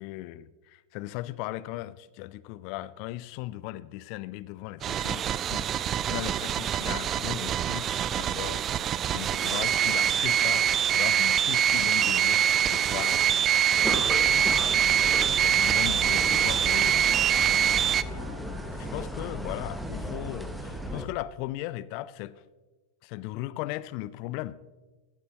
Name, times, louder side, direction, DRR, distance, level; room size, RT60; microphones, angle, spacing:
voice 1, 0.0-5.7 6.1-8.6 9.1-10.7 10.9-14.5 15.0-17.5 17.7-18.5 18.8-22.4 23.0-24.6, left 16 dB, 45° left, 18 dB, 0.4 m, -38 dB
sound 1, 4.8-18.0, right 9 dB, 30° right, 0.3 m, -24 dB
sound 2, 11.7-18.9, right 3 dB, 75° right, 1.0 m, -51 dB
sound 3, 13.8-21.1, equal, ahead, 1.0 m, -35 dB
15.0 x 12.0 x 2.8 m, 1.2 s
figure-of-eight pair, 90°, 0 cm